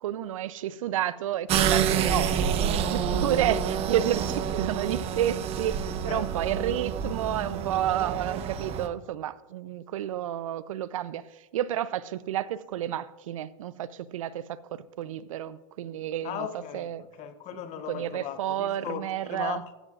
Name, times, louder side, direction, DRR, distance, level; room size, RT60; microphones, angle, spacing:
voice 1, 0.0-2.5 2.7-11.2 11.5-16.5 16.7-17.0 17.9-19.6, right 11 dB, 80° right, 0.6 m, -30 dB
sound 1, 1.5-8.9, right 7 dB, 35° right, 1.0 m, -28 dB
voice 2, 16.2-19.7, left 10 dB, 40° left, 1.1 m, -37 dB
15.0 x 13.0 x 2.5 m
hypercardioid pair, 115°, 17 cm